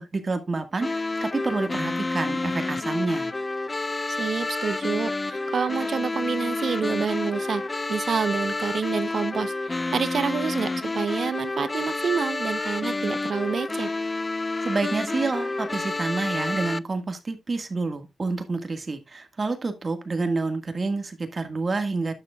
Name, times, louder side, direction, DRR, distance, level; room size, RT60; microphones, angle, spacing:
voice 1, 0.0-3.3 14.6-22.1, right 3 dB, 35° right, 1.7 m, -28 dB
sound 1, 0.8-16.8, left 2 dB, 25° left, 0.4 m, -29 dB
voice 2, 4.1-13.9, right 6 dB, 60° right, 0.8 m, -28 dB
12.0 x 6.9 x 2.4 m
wide cardioid pair, 120°, 0 cm